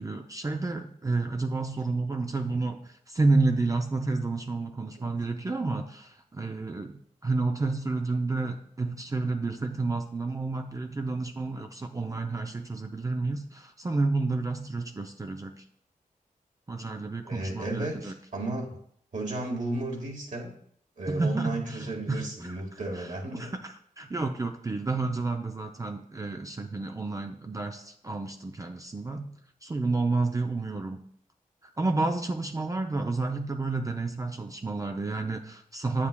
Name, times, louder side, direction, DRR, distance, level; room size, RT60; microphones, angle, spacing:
voice 1, 0.0-15.6 16.7-18.1 21.1-22.6 22.9-31.0 31.6-36.1, right 3 dB, 25° right, 5 dB, 0.5 m, -30 dB
voice 2, 17.3-18.8 19.1-20.5 21.0-23.5, right 2 dB, 60° right, 0 dB, 1.7 m, -33 dB
8.2 x 7.3 x 2.2 m, 0.65 s
wide cardioid pair, 80°, 14 cm